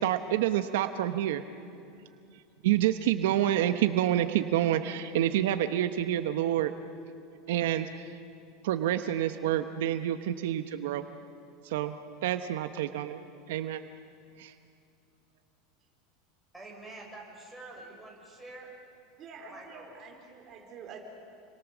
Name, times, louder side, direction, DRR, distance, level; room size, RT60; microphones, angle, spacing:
voice 1, 0.0-1.4 2.6-6.7 7.5-8.1 8.6-11.0 11.6-11.9 12.2-13.2 13.5-13.8 14.4-14.5, right 12 dB, 80° right, 9 dB, 1.1 m, -28 dB
voice 2, 16.5-18.7 19.5-19.8, right 2 dB, ahead, -3 dB, 6.6 m, -47 dB
voice 3, 19.2-21.0, right 5 dB, 35° right, 2 dB, 4.4 m, -47 dB
29.5 x 23.5 x 7.4 m, 2.6 s
supercardioid pair, 145°, 0 cm